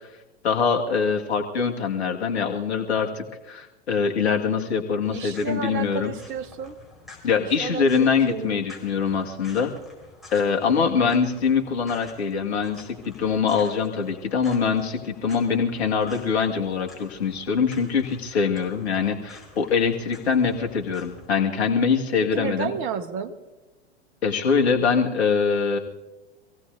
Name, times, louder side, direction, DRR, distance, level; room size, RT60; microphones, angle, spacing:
voice 1, 0.4-6.1 7.2-9.7 10.3-22.7 24.2-25.8, left 6 dB, 70° left, 3 dB, 2.0 m, -23 dB
sound 1, 5.0-21.3, left 2 dB, ahead, 4.8 m, -49 dB
voice 2, 5.1-6.8 7.4-8.6 10.7-11.1 22.3-23.3, right 6 dB, 35° right, 7 dB, 1.4 m, -32 dB
26.0 x 16.5 x 2.7 m, 1.1 s
figure-of-eight pair, 95°, 33 cm